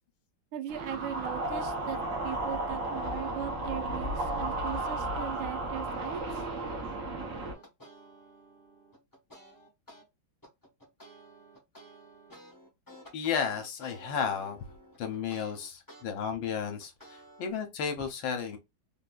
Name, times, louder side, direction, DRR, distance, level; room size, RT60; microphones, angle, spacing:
voice 1, 0.5-6.4, right 10 dB, 85° right, 1.5 m, -39 dB
sound 1, 0.7-7.5, right 2 dB, 50° right, 1.0 m, -34 dB
sound 2, 7.5-10.0 10.4-16.0 16.4-17.5, equal, 15° left, 0.7 m, -53 dB
voice 2, 13.1-18.6, left 7 dB, 70° left, 1.5 m, -33 dB
3.8 x 2.6 x 2.2 m
omnidirectional pair, 2.3 m